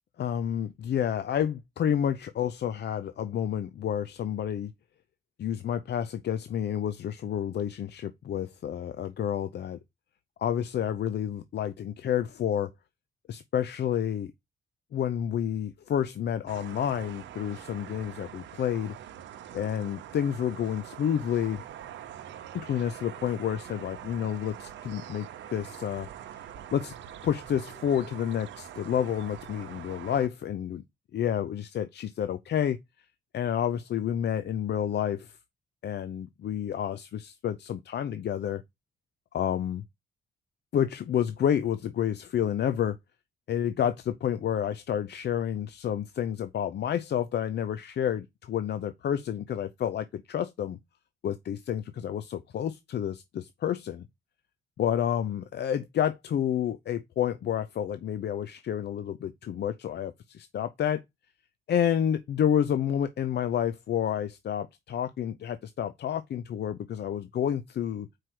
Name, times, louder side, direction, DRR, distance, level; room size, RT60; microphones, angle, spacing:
voice 1, 0.2-4.7 5.4-9.8 10.4-12.7 13.3-14.3 14.9-18.9 19.5-21.6 22.5-26.1 26.7-26.9 27.2-30.8 31.1-32.8 33.3-35.3 35.8-38.6 39.3-39.8 40.7-43.0 43.5-50.8 51.2-54.1 54.8-61.0 61.7-68.1, left 9 dB, 65° left, 0.6 m, -29 dB
sound 1, 16.5-30.3, right 10 dB, 85° right, 0.8 m, -44 dB
4.8 x 4.6 x 5.9 m
cardioid pair, 85°, 19 cm